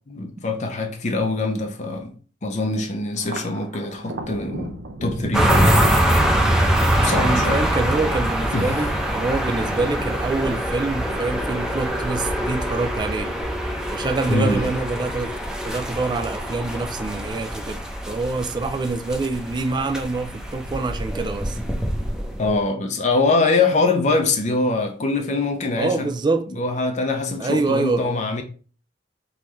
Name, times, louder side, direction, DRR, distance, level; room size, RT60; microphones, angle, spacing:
voice 1, 0.1-2.1 2.4-5.7 7.0-7.6 8.5-8.7 14.3-14.8 22.4-26.1 26.5-28.4, left 3 dB, 40° left, 0.7 m, -23 dB
Thunder, 3.2-15.8 16.2-17.0 17.4-18.2, right 1 dB, 60° right, 0.7 m, -37 dB
sound 1, 5.3-22.6, right 1 dB, 5° right, 0.8 m, -24 dB
voice 2, 6.8-13.3 13.9-15.3 15.6-17.8 18.1-21.6 25.8-26.5 27.4-28.1, right 3 dB, 25° right, 0.4 m, -25 dB
4.0 x 3.8 x 3.1 m
head